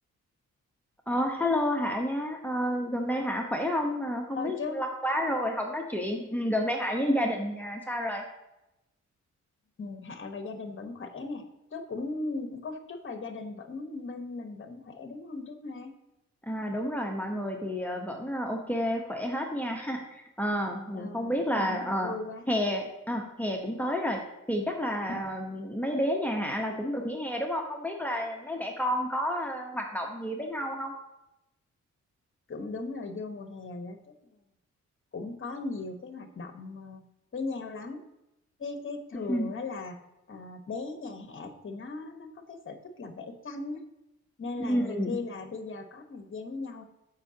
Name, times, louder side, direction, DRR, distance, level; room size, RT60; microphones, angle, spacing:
voice 1, 1.1-8.2 16.4-22.1 22.5-24.2 24.5-30.9 39.3-39.5 44.6-45.2, equal, 5° left, 1 dB, 1.1 m, -30 dB
voice 2, 4.3-4.8 9.8-11.4 11.7-15.9 20.9-22.4 25.1-25.3 32.5-34.4 35.1-37.0 37.3-38.0 38.6-40.0 40.3-43.8 44.4-46.8, left 3 dB, 45° left, 6 dB, 1.3 m, -38 dB
14.0 x 5.6 x 2.9 m, 0.92 s
cardioid pair, 100°, 29 cm